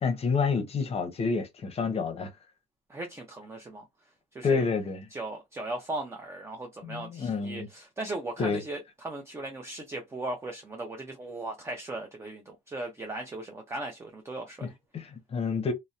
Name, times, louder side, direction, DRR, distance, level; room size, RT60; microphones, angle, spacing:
voice 1, 0.0-2.3 4.4-5.1 6.8-7.7 8.4-8.6 14.9-15.7, left 5 dB, 35° left, 0.7 m, -28 dB
voice 2, 2.9-3.9 4.3-4.7 5.1-14.7, right 2 dB, 15° right, 0.5 m, -38 dB
2.7 x 2.0 x 2.3 m
cardioid pair, 110°, 17 cm